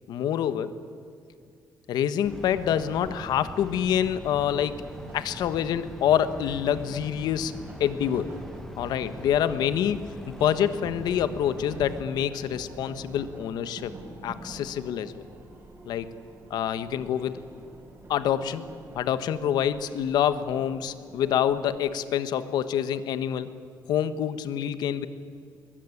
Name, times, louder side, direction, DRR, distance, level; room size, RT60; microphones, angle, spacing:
voice 1, 0.1-0.7 1.9-4.8 5.1-8.3 8.8-10.0 10.3-13.9 14.2-15.1 15.8-16.1 16.5-17.4 18.1-18.6 18.9-23.5 23.9-25.1, left 9 dB, 80° left, 12 dB, 1.4 m, -26 dB
sound 1, 2.2-12.0, left 1 dB, 5° left, 1.8 m, -43 dB
sound 2, 2.3-21.8, right 2 dB, 30° right, 6.1 m, -46 dB
22.0 x 21.5 x 9.9 m, 2.3 s
cardioid pair, 160°, 7 cm